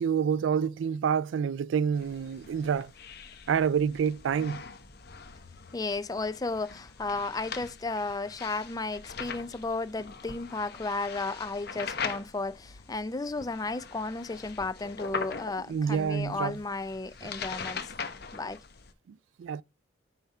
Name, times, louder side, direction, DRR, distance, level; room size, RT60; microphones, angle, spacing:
voice 1, 0.0-2.9 3.5-4.6 15.7-16.6 19.1-19.6, right 7 dB, 75° right, 0.3 m, -28 dB
sound 1, 1.9-18.9, left 5 dB, 55° left, 0.9 m, -42 dB
voice 2, 5.7-17.9 18.3-18.6, left 3 dB, 20° left, 0.4 m, -34 dB
9.1 x 3.4 x 5.4 m
head